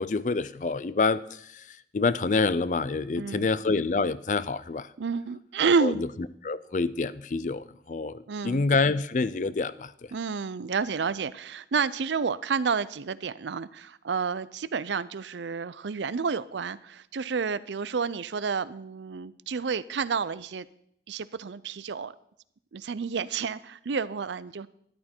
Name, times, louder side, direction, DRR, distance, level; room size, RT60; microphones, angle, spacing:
voice 1, 0.0-4.9 5.8-5.9 6.4-10.1, left 4 dB, 45° left, 16 dB, 0.4 m, -27 dB
voice 2, 3.1-3.5 5.0-6.0 8.3-8.7 10.1-20.7 21.1-22.1 22.7-24.7, right 5 dB, 85° right, 17 dB, 0.5 m, -30 dB
13.0 x 11.0 x 4.4 m, 0.71 s
head